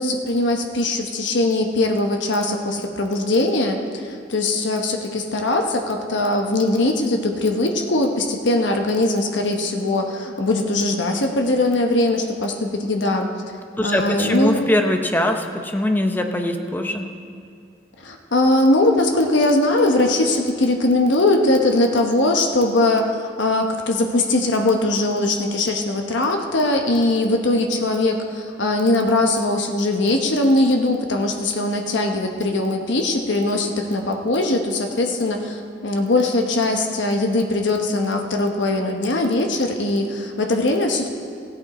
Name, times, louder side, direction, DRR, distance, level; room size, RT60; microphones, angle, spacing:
voice 1, 0.0-13.3 13.8-14.6 18.0-23.1 23.4-41.1, left 2 dB, 85° left, 3 dB, 1.0 m, -20 dB
voice 2, 13.8-17.1, left 1 dB, 10° left, 4 dB, 0.7 m, -22 dB
16.0 x 8.5 x 4.2 m, 2.3 s
head